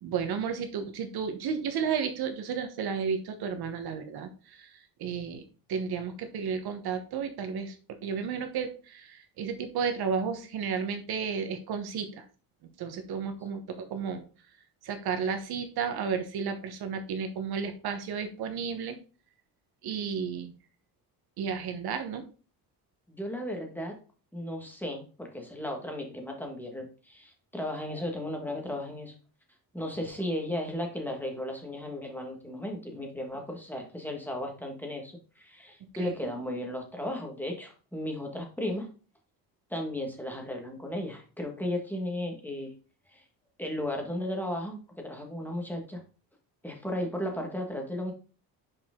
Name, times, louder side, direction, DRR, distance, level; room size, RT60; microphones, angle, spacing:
voice 1, 0.0-5.4 5.7-12.2 12.8-14.2 14.8-19.0 19.8-20.5 21.4-22.2 36.0-36.3, right 6 dB, 65° right, 7 dB, 1.1 m, -33 dB
voice 2, 23.1-23.9 24.3-29.1 29.7-38.9 39.7-42.7 43.1-43.2 43.6-46.0 46.6-48.1, left 1 dB, 5° left, 2 dB, 1.6 m, -35 dB
6.3 x 4.8 x 3.7 m, 0.37 s
cardioid pair, 140°, 40 cm